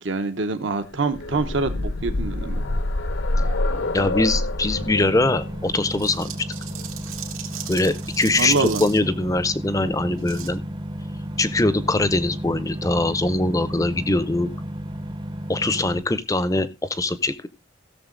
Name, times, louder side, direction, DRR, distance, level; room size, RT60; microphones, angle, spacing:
voice 1, 0.0-2.6 8.4-8.8, right 3 dB, 65° right, 8 dB, 0.9 m, -25 dB
sound 1, 0.9-8.7 9.9-10.0 10.3-10.4, left 2 dB, 70° left, 1.0 m, -27 dB
voice 2, 3.9-6.3 7.7-10.6 11.4-14.5 15.5-17.5, left 2 dB, 15° left, 15 dB, 0.6 m, -22 dB
sound 2, 4.7-16.0, equal, 20° right, 0.7 m, -33 dB
sound 3, 5.8-9.0 10.2-10.5, right 10 dB, 90° right, 2.2 m, -37 dB
16.0 x 6.8 x 3.8 m, 0.27 s
head